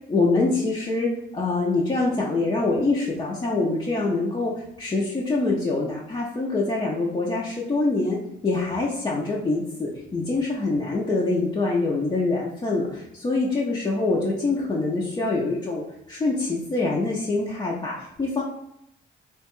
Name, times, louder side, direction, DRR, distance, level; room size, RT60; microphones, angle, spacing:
voice 1, 0.1-4.5 4.8-8.2 8.4-18.4, left 3 dB, 25° left, -4 dB, 0.5 m, -25 dB
2.9 x 2.2 x 2.9 m, 0.80 s
cardioid pair, 90°, 20 cm